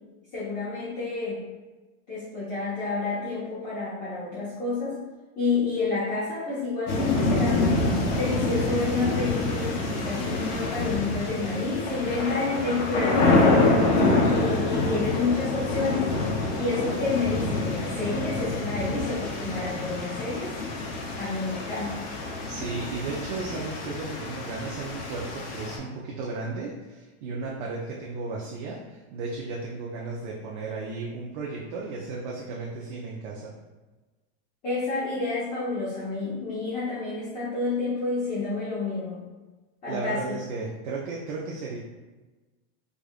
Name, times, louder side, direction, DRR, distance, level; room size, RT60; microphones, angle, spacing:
voice 1, 0.3-1.4 2.1-5.0 5.4-7.8 8.1-13.3 14.2-16.1 16.5-20.6 21.2-22.0 34.6-39.2 39.8-40.2, left 3 dB, 25° left, -11 dB, 1.0 m, -29 dB
sound 1, 6.9-25.8, left 2 dB, 45° left, 0.7 m, -26 dB
voice 2, 22.5-33.5 39.9-41.8, right 3 dB, 50° right, -4 dB, 0.6 m, -34 dB
4.9 x 2.4 x 2.4 m, 1.2 s
supercardioid pair, 165°, 33 cm